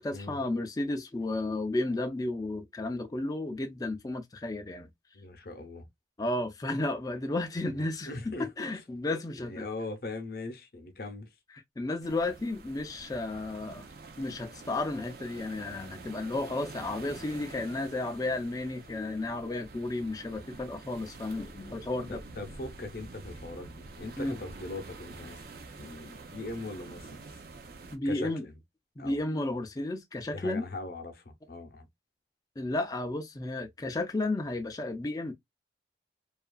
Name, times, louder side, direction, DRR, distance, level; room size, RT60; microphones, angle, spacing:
voice 1, 0.0-4.9 6.2-8.1 8.4-9.7 11.8-13.9 14.2-22.2 24.2-24.4 27.9-28.4 29.0-30.6 32.6-35.3, left 2 dB, 20° left, 0.3 m, -33 dB
voice 2, 5.1-5.9 7.6-8.7 9.4-11.3 22.1-25.4 25.7-27.2 28.0-28.6 29.0-29.2 30.3-31.9, left 2 dB, 55° left, 0.7 m, -41 dB
sound 1, 12.0-28.0, right 3 dB, 50° right, 0.5 m, -47 dB
2.8 x 2.4 x 2.2 m
head